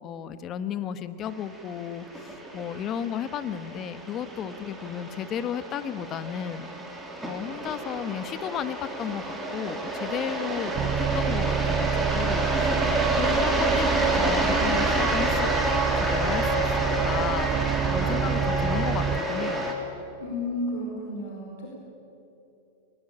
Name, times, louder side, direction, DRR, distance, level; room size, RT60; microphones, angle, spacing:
voice 1, 0.0-6.7 7.2-12.8 13.1-19.7, left 9 dB, 35° left, 12 dB, 1.3 m, -34 dB
sound 1, 1.4-19.7, right 2 dB, 5° right, 3.8 m, -28 dB
sound 2, 10.7-19.2, right 9 dB, 35° right, 0.7 m, -29 dB
voice 2, 20.2-21.7, left 1 dB, 75° left, -1 dB, 4.8 m, -32 dB
22.0 x 19.5 x 8.9 m, 3.0 s
hypercardioid pair, 120°, 0 cm